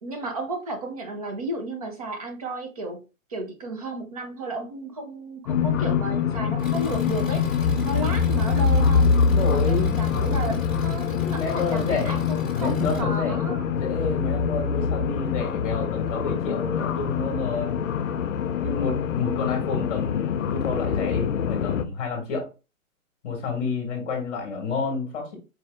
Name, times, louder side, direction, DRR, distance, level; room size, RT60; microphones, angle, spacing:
voice 1, 0.0-3.0 3.3-7.4 7.8-9.1 9.3-13.7, right 2 dB, 25° right, 4 dB, 0.7 m, -33 dB
sound 1, 5.5-21.8, left 6 dB, 65° left, 0.6 m, -24 dB
Engine, 6.6-13.0, left 3 dB, 5° right, 1.1 m, -40 dB
voice 2, 9.3-10.0 11.3-12.3 12.5-17.8 18.6-22.4 23.2-25.3, left 4 dB, 25° left, 1 dB, 1.2 m, -29 dB
4.6 x 2.6 x 3.3 m, 0.30 s
hypercardioid pair, 160°, 42 cm